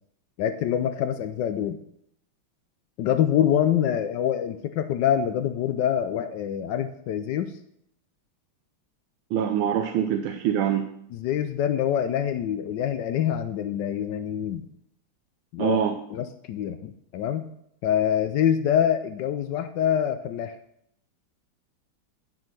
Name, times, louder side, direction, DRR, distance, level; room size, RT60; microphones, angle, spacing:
voice 1, 0.4-1.8 3.0-7.5 11.1-14.7 15.5-15.8 16.1-17.5 17.8-20.6, left 9 dB, 70° left, 9 dB, 1.1 m, -25 dB
voice 2, 9.3-10.9 15.6-16.0, right 9 dB, 80° right, 6 dB, 1.5 m, -24 dB
9.6 x 5.2 x 6.1 m, 0.73 s
omnidirectional pair, 2.3 m